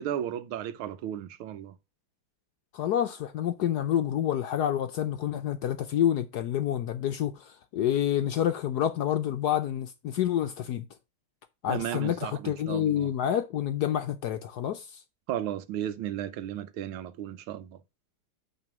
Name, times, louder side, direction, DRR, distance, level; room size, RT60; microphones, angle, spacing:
voice 1, 0.0-1.8 11.7-13.1 15.3-17.8, right 10 dB, 85° right, 1.6 m, -34 dB
voice 2, 2.7-10.9 11.6-15.0, left 10 dB, 70° left, 1.0 m, -28 dB
9.1 x 3.8 x 5.9 m
omnidirectional pair, 2.2 m